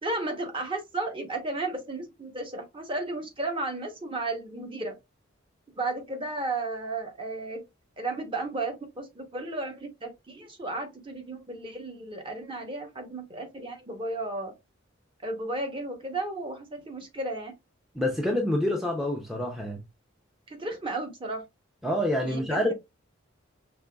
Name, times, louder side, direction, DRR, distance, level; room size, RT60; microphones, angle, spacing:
voice 1, 0.0-4.9 5.8-7.6 8.0-14.5 15.2-17.5 20.5-21.4 22.2-22.7, right 2 dB, 25° right, 0.9 m, -34 dB
voice 2, 17.9-19.8 21.8-22.7, left 1 dB, ahead, 0.5 m, -27 dB
5.3 x 2.9 x 2.3 m
head